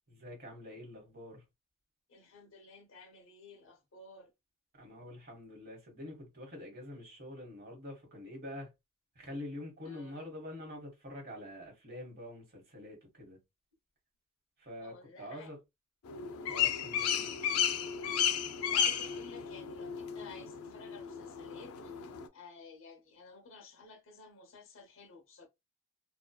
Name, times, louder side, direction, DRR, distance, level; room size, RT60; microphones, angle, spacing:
voice 1, 0.1-1.4 4.7-8.7 9.1-13.4 14.6-15.6 16.5-17.4, left 1 dB, 45° right, 1.0 m, -46 dB
voice 2, 2.1-4.3 9.8-10.3 14.8-15.5 18.6-22.1 22.3-25.5, left 4 dB, 60° left, 0.7 m, -54 dB
sound 1, 16.1-22.3, left 8 dB, 90° left, 0.4 m, -33 dB
2.7 x 2.2 x 2.2 m
head